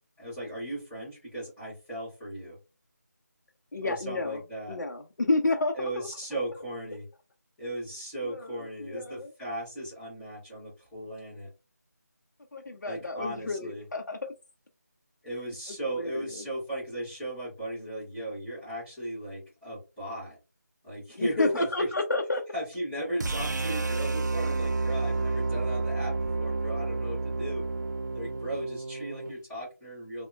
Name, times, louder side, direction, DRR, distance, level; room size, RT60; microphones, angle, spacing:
voice 1, 0.2-2.6 3.8-4.8 5.7-7.0 7.6-11.5 12.9-13.8 15.2-20.4 20.8-21.9 22.5-27.6 28.1-30.3, right 1 dB, 5° left, -11 dB, 0.7 m, -36 dB
voice 2, 3.7-4.4 4.7-6.1 8.3-9.3 12.5-14.3 15.9-16.2 21.1-22.4, left 2 dB, 75° left, 4 dB, 0.5 m, -30 dB
sound 1, 23.2-29.3, right 3 dB, 85° right, 0.4 m, -30 dB
3.5 x 2.1 x 2.3 m, 0.29 s
figure-of-eight pair, 170°, 9 cm